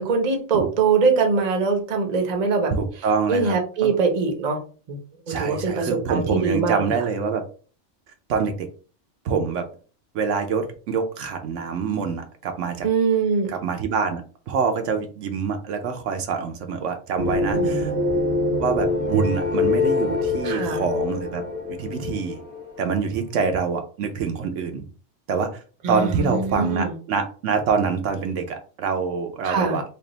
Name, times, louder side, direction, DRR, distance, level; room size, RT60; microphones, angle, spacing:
voice 1, 0.0-2.7 3.3-4.6 4.9-5.0 5.3-6.9 12.8-13.5 17.5-17.7 20.4-20.8 25.8-26.9 29.4-29.8, right 4 dB, 40° right, 4 dB, 0.7 m, -22 dB
voice 2, 2.7-3.5 3.8-3.9 5.3-7.4 8.3-8.7 9.2-9.6 10.1-12.9 13.5-14.2 14.5-17.9 18.6-21.4 21.7-22.4 22.8-24.8 25.3-25.6 25.9-29.8, right 5 dB, 75° right, 6 dB, 1.0 m, -25 dB
sound 1, 17.2-23.0, left 3 dB, 10° left, 0.8 m, -24 dB
3.3 x 2.4 x 3.8 m, 0.38 s
omnidirectional pair, 1.3 m